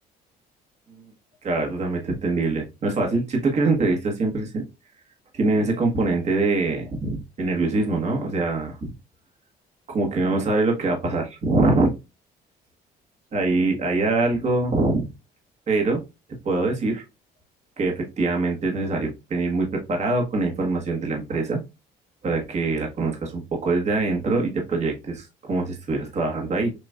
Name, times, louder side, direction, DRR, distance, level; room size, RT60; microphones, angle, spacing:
voice 1, 1.4-4.6 5.3-8.9 9.9-11.9 13.3-15.1 15.7-16.0 16.4-17.0 17.8-21.6 22.2-26.7, right 3 dB, 40° right, 1 dB, 1.5 m, -24 dB
6.4 x 3.0 x 2.3 m, 0.26 s
cardioid pair, 110°, 17 cm